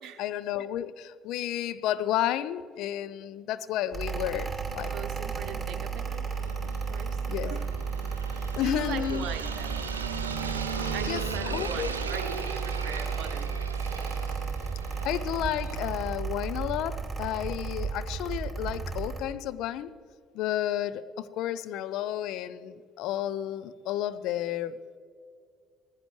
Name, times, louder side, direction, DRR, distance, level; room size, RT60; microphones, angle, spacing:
voice 1, 0.2-4.9 7.3-7.6 8.5-9.3 11.1-11.2 11.5-11.9 15.0-19.9 20.3-24.8, left 12 dB, 65° left, 13 dB, 0.6 m, -31 dB
Mechanical fan, 3.9-19.2, right 5 dB, 20° right, 2.5 m, -33 dB
sound 1, 4.7-16.2, right 5 dB, 85° right, 0.6 m, -38 dB
voice 2, 4.8-6.3 6.6-7.7 8.3-9.9 10.9-13.7, right 8 dB, 55° right, 6 dB, 0.9 m, -41 dB
18.5 x 15.0 x 3.2 m, 2.1 s
figure-of-eight pair, 55°, 0 cm